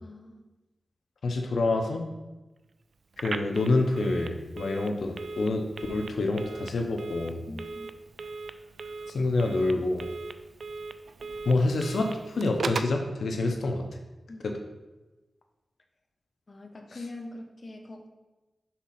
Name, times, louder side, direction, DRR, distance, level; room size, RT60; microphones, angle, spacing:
voice 1, 0.0-0.4 7.5-7.9 14.3-14.5 16.5-18.1, left 2 dB, 40° left, 2 dB, 0.8 m, -43 dB
voice 2, 1.2-2.1 3.2-7.4 9.1-10.0 11.5-13.8 14.4-14.5, left 2 dB, 85° left, 3 dB, 0.7 m, -27 dB
Telephone, 3.1-13.0, right 4 dB, 70° right, 0.3 m, -38 dB
5.8 x 3.6 x 5.8 m, 1.1 s
wide cardioid pair, 115°, 0 cm